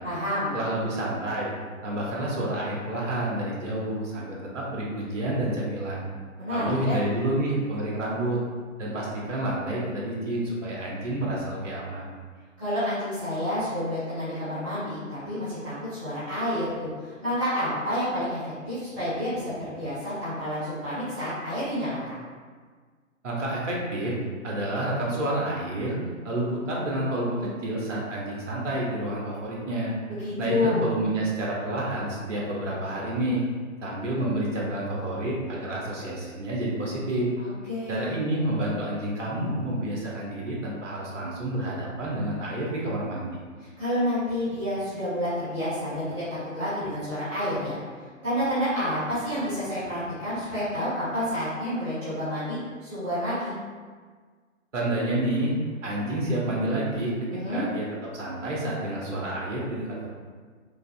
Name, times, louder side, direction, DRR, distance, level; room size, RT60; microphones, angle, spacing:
voice 1, 0.0-0.5 6.4-7.0 12.6-22.2 30.2-30.8 37.4-38.1 43.6-46.2 46.5-47.8 48.2-53.6 57.3-57.6, equal, 5° right, -15 dB, 0.5 m, -29 dB
voice 2, 0.5-1.5 1.8-6.0 6.5-8.4 8.8-12.1 23.2-24.1 24.4-26.0 26.2-29.9 30.4-33.4 33.8-37.3 37.9-43.4 54.7-55.5 55.8-60.1, right 1 dB, 65° right, -4 dB, 1.2 m, -29 dB
5.1 x 2.5 x 2.2 m, 1.6 s
figure-of-eight pair, 130°, 41 cm